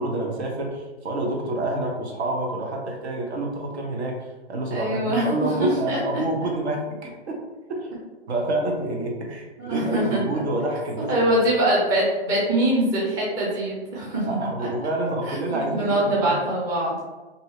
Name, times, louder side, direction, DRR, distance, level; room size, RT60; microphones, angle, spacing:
voice 1, 0.0-7.4 7.7-7.9 8.3-11.3 14.2-16.4, right 1 dB, 80° right, 0 dB, 1.0 m, -28 dB
voice 2, 4.7-5.3 5.6-6.2 9.6-10.2 11.1-14.5 15.5-17.1, right 1 dB, 10° right, -6 dB, 0.5 m, -23 dB
2.7 x 2.6 x 2.9 m, 1.2 s
hypercardioid pair, 140°, 33 cm